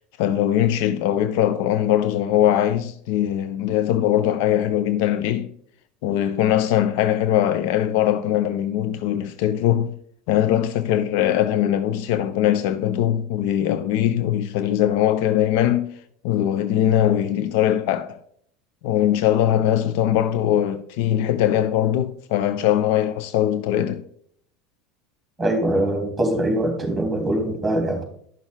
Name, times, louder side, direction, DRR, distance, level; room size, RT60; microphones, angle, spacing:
voice 1, 0.2-5.5 6.0-10.0 10.3-15.9 16.2-18.2 18.8-24.0, left 11 dB, 55° left, 0.5 m, -21 dB
voice 2, 25.4-28.0, right 1 dB, 10° right, 2.9 m, -22 dB
10.5 x 6.2 x 3.5 m
figure-of-eight pair, 75°, 0 cm